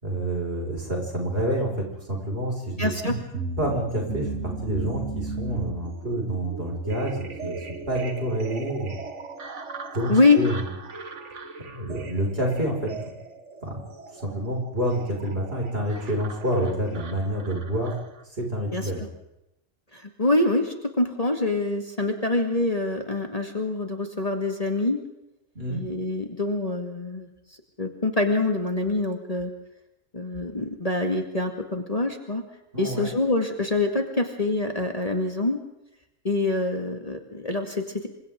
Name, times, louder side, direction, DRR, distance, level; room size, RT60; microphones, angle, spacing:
voice 1, 0.0-2.9 3.6-8.9 9.9-10.7 11.7-13.1 13.6-13.8 14.1-17.9 18.3-19.0 25.5-25.8 32.7-33.1, right 1 dB, 50° right, 0 dB, 6.2 m, -28 dB
voice 2, 2.8-3.2 10.1-10.4 18.7-19.1 19.9-25.0 25.7-27.3 27.8-29.5 30.1-32.4 32.8-35.6 36.2-38.1, left 2 dB, 30° left, 3 dB, 2.2 m, -25 dB
sound 1, 3.0-18.2, right 3 dB, 65° right, 2.0 m, -36 dB
27.5 x 25.5 x 3.8 m, 0.86 s
omnidirectional pair, 1.3 m